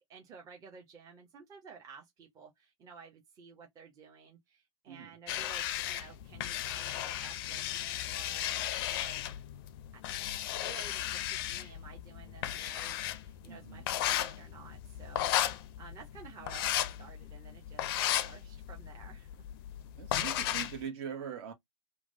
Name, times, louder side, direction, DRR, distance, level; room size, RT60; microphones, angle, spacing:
voice 1, 0.1-8.6 8.9-9.2 9.9-10.0 10.4-15.3 15.8-17.8 18.2-19.5, right 5 dB, 20° right, 0.8 m, -53 dB
sound 1, 5.3-20.8, left 12 dB, 45° left, 0.4 m, -35 dB
voice 2, 13.5-13.9 20.0-21.5, right 7 dB, 50° right, 0.9 m, -42 dB
3.1 x 2.1 x 2.5 m
hypercardioid pair, 125°, 17 cm